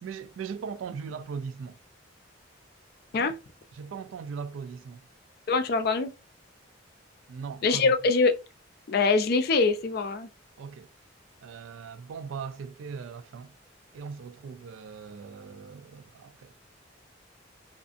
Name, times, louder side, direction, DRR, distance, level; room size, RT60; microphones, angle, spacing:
voice 1, 0.0-1.8 3.7-5.1 7.3-7.9 10.6-10.9 11.4-13.5 13.9-16.5, right 6 dB, 90° right, 0.3 m, -39 dB
voice 2, 5.5-6.1 7.6-8.4 8.9-10.3, left 4 dB, 55° left, 0.4 m, -23 dB
2.5 x 2.4 x 2.4 m
head